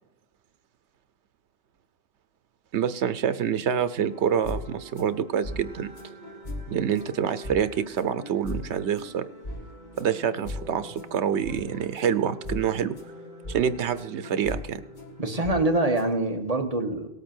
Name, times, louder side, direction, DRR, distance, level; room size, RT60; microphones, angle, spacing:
voice 1, 2.7-5.9 6.7-9.2 10.0-13.0 13.5-14.8, right 8 dB, 85° right, 13 dB, 1.0 m, -26 dB
sound 1, 4.1-16.2, left 1 dB, 45° left, 1.7 m, -39 dB
voice 2, 15.2-17.1, right 2 dB, 35° right, 3 dB, 1.5 m, -25 dB
18.5 x 8.1 x 4.5 m, 0.97 s
omnidirectional pair, 1.1 m